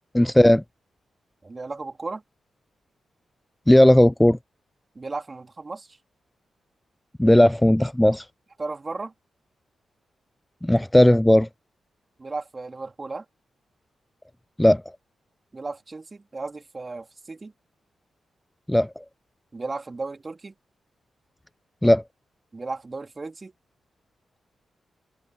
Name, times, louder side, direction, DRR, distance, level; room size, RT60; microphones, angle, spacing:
voice 1, 0.1-0.6 3.7-4.4 7.2-8.3 10.6-11.5 14.6-14.8 18.7-19.0 21.8-22.0, left 1 dB, 10° left, 0.4 m, -16 dB
voice 2, 1.4-2.2 4.9-6.0 8.6-9.1 12.2-13.2 15.5-17.5 19.5-20.5 22.5-23.5, right 3 dB, 35° right, 3.1 m, -35 dB
supercardioid pair, 55°, 0 cm